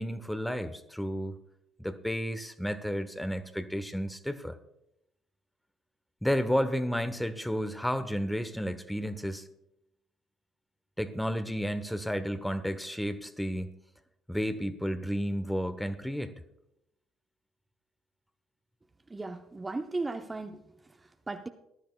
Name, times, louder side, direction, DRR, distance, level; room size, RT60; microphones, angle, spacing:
voice 1, 0.0-1.4 1.8-4.6 6.2-9.5 11.0-13.7 14.3-16.3, equal, 5° left, 12 dB, 1.0 m, -32 dB
voice 2, 19.1-21.5, right 3 dB, 20° right, 6 dB, 0.8 m, -37 dB
19.0 x 12.5 x 2.4 m, 0.83 s
figure-of-eight pair, 55°, 0 cm